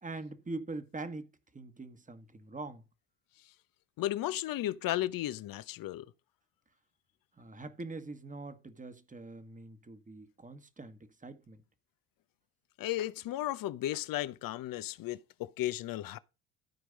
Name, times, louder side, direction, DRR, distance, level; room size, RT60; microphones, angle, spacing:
voice 1, 0.0-2.8 7.4-11.6, right 3 dB, 15° right, 1.5 m, -43 dB
voice 2, 4.0-6.1 12.8-16.2, left 14 dB, 45° left, 0.8 m, -34 dB
13.5 x 4.6 x 5.2 m
hypercardioid pair, 65°, 46 cm